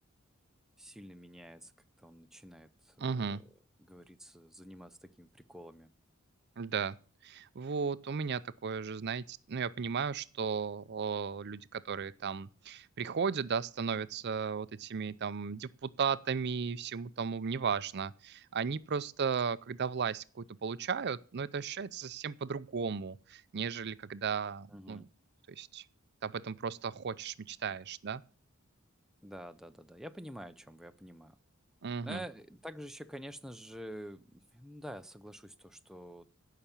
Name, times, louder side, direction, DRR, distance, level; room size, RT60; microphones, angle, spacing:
voice 1, 0.8-1.7 2.0-3.4 3.8-5.9 24.7-25.1 29.2-31.4 32.0-36.3, equal, ahead, 0.5 m, -48 dB
voice 2, 3.0-3.4 6.6-7.0 7.2-25.0 25.5-25.8 26.2-28.2 31.8-32.2, right 6 dB, 50° right, 0.5 m, -35 dB
15.5 x 5.8 x 7.2 m
head